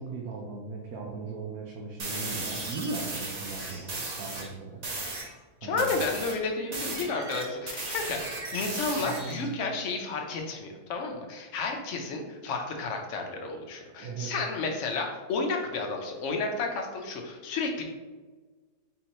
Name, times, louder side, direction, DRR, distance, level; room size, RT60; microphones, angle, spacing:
voice 1, 0.0-4.8 5.6-5.9 9.0-9.4 14.0-14.3, right 4 dB, 75° right, -2 dB, 1.1 m, -38 dB
sound 1, 2.0-4.5 4.8-5.3 5.8-9.5, right 3 dB, 50° right, 0.4 m, -36 dB
voice 2, 5.6-17.8, left 3 dB, 60° left, 2 dB, 0.9 m, -32 dB
4.3 x 3.7 x 2.9 m, 1.3 s
omnidirectional pair, 1.6 m